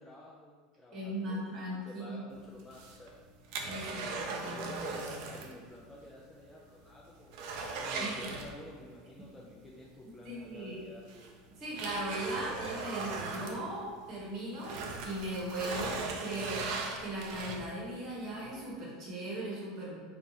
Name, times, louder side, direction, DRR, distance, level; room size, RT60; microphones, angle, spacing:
voice 1, 0.0-3.1 3.8-7.4 7.8-11.3, left 1 dB, 10° left, -4 dB, 0.3 m, -50 dB
voice 2, 0.9-2.2 3.6-5.2 8.0-8.4 10.2-10.8 11.6-20.0, right 1 dB, 35° right, -5 dB, 1.0 m, -39 dB
sound 1, 2.6-5.6 5.9-6.0 6.4-6.5 6.9-8.9 10.3-10.4 11.1-14.2 14.5-17.9 18.4-18.5, right 4 dB, 60° right, 0.4 m, -38 dB
2.7 x 2.4 x 3.9 m, 1.5 s
supercardioid pair, 150°, 0 cm